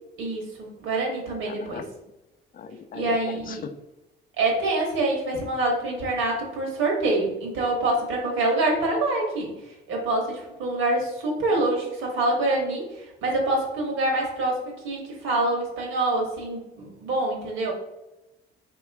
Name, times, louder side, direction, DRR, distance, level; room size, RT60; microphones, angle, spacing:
voice 1, 0.2-1.8 2.9-3.6 4.4-9.5 9.9-17.7, right 2 dB, 90° right, 0 dB, 1.4 m, -26 dB
voice 2, 1.3-1.9 2.5-3.7, left 6 dB, 45° left, 9 dB, 0.5 m, -39 dB
3.2 x 3.0 x 4.6 m, 0.97 s
cardioid pair, 90°, 20 cm